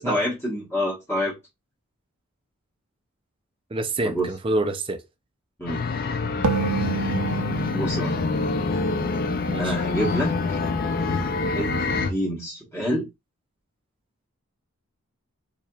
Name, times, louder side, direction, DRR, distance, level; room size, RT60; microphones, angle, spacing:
voice 1, 0.0-1.3 4.0-4.3 5.6-5.8 7.7-8.1 9.6-10.6 11.4-13.1, equal, 10° left, 1.2 m, -27 dB
voice 2, 3.7-5.0 9.5-9.8, right 2 dB, 25° right, 0.5 m, -27 dB
sound 1, 5.7-12.1, left 3 dB, 40° left, 0.4 m, -26 dB
sound 2, 6.4-9.9, right 5 dB, 90° right, 0.5 m, -30 dB
4.5 x 2.8 x 2.3 m
head